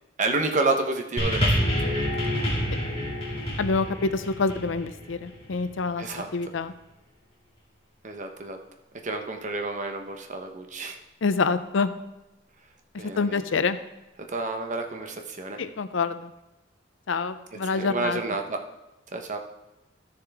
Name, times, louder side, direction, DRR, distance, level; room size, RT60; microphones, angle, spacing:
voice 1, 0.2-1.7 6.0-6.3 8.0-8.6 9.0-11.0 13.0-13.4 14.3-15.6 17.7-18.6 19.1-19.4, right 3 dB, 40° right, 4 dB, 0.9 m, -29 dB
sound 1, 1.2-5.7 6.5-6.6, equal, 30° left, 2.5 m, -28 dB
voice 2, 3.6-6.0 6.3-6.7 11.2-11.9 13.2-13.8 15.6-16.3 17.1-18.2, left 4 dB, 75° left, 12 dB, 0.5 m, -26 dB
13.5 x 6.7 x 3.5 m, 0.95 s
head